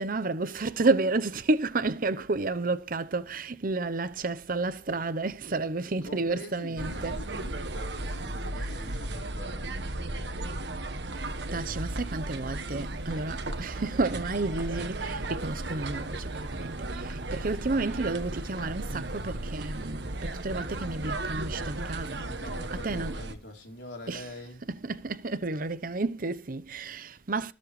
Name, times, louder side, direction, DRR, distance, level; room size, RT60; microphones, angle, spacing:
voice 1, 0.0-7.2 11.5-22.2 22.8-23.1 24.1-24.2 24.7-27.5, right 3 dB, 50° right, 0.8 m, -31 dB
voice 2, 6.0-10.5 22.1-24.7, left 1 dB, 80° left, 4.1 m, -45 dB
sound 1, 6.8-23.3, right 2 dB, 80° right, 1.5 m, -35 dB
20.0 x 7.6 x 3.2 m
head